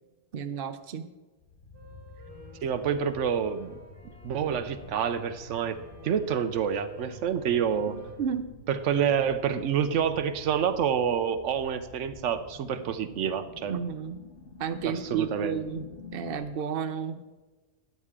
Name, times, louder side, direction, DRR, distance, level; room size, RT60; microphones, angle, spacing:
voice 1, 0.3-1.1 7.9-8.5 13.7-14.2 14.6-15.9 16.1-17.2, right 7 dB, 55° right, 9 dB, 0.9 m, -32 dB
sound 1, 1.4-16.4, left 2 dB, 75° left, 1.8 m, -48 dB
sound 2, 1.7-8.1, left 1 dB, 15° left, 4.0 m, -50 dB
voice 2, 2.6-3.8 4.2-5.8 6.0-8.0 8.7-13.8 14.8-15.6, right 8 dB, 85° right, 11 dB, 1.0 m, -28 dB
12.5 x 10.5 x 3.7 m, 1.2 s
omnidirectional pair, 1.2 m